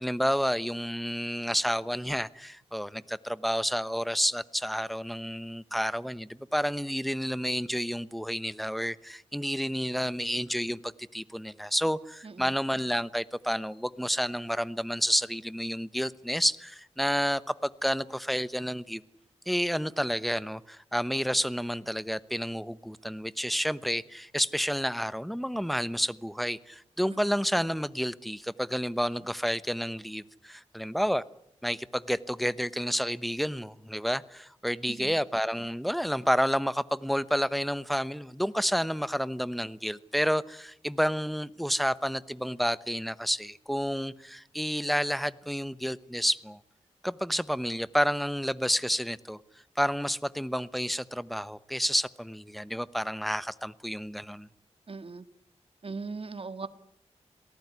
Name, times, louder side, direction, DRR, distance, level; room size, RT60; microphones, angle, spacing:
voice 1, 0.0-19.0 19.5-31.2 31.6-46.6 47.0-49.4 49.8-54.5, equal, ahead, 1.0 m, -30 dB
voice 2, 54.9-55.3 55.8-56.7, right 4 dB, 50° right, 1.8 m, -39 dB
27.5 x 18.5 x 9.7 m
wide cardioid pair, 75°, 12 cm